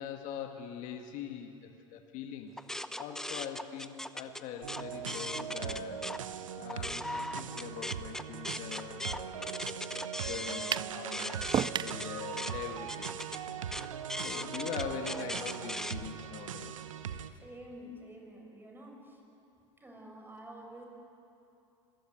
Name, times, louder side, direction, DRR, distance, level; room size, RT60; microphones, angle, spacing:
voice 1, 0.0-6.1 6.6-9.7 10.2-13.2 13.8-13.9 14.2-16.7, left 8 dB, 50° left, 4 dB, 1.8 m, -43 dB
sound 1, 2.6-6.2 6.6-15.9, left 1 dB, 5° left, 0.7 m, -40 dB
sound 2, 4.6-17.3, right 8 dB, 85° right, 1.0 m, -40 dB
sound 3, 10.7-11.0 11.5-12.0, right 9 dB, 30° right, 0.5 m, -30 dB
voice 2, 17.4-19.2 19.8-20.8, equal, 15° right, 1 dB, 5.8 m, -49 dB
26.0 x 15.0 x 9.3 m, 2.8 s
hypercardioid pair, 90°, 16 cm